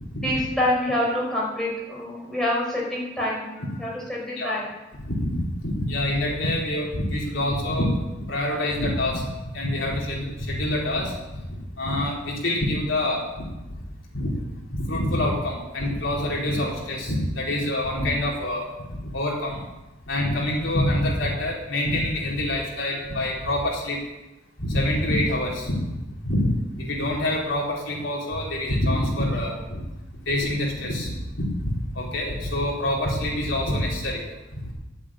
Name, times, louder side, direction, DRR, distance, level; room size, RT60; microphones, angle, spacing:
voice 1, 0.2-3.4 3.8-4.7, left 1 dB, ahead, -6 dB, 5.5 m, -26 dB
voice 2, 5.0-7.9 8.3-11.2 11.8-13.5 14.1-14.3 14.8-18.7 18.9-19.6 20.1-24.0 24.6-25.9 26.2-26.5 26.8-29.8 30.3-34.2 34.5-34.6, left 1 dB, 70° left, -3 dB, 3.9 m, -26 dB
10.0 x 8.5 x 8.7 m, 1.0 s
head